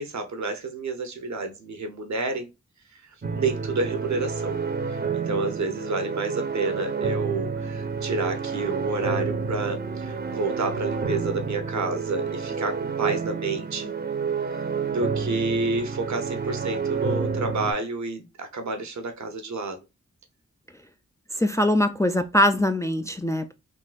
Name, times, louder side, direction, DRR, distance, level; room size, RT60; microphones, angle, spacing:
voice 1, 0.0-2.5 3.3-4.6 4.9-13.9 14.9-19.8, right 3 dB, 70° right, 0.9 m, -29 dB
sound 1, 3.2-17.7, right 5 dB, 35° right, 0.7 m, -29 dB
voice 2, 21.3-23.5, left 1 dB, 10° left, 0.3 m, -22 dB
3.6 x 2.6 x 2.4 m
cardioid pair, 55°, 30 cm